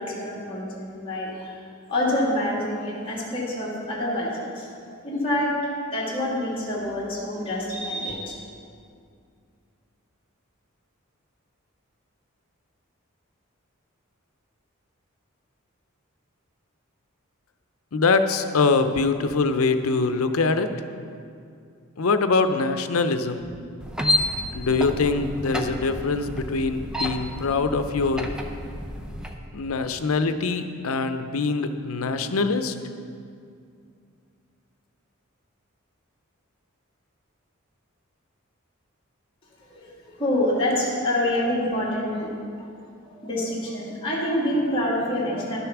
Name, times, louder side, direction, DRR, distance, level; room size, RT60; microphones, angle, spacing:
voice 1, 0.0-1.6 1.9-5.6 5.9-8.3 39.7-42.3 42.6-42.7 43.0-45.6, left 1 dB, 25° left, -6 dB, 2.4 m, -27 dB
voice 2, 17.9-20.7 22.0-23.5 24.5-28.3 29.5-32.7, left 4 dB, 90° left, 9 dB, 0.6 m, -23 dB
sound 1, 23.8-29.3, left 1 dB, 5° right, 0.6 m, -30 dB
11.5 x 6.9 x 6.0 m, 2.3 s
head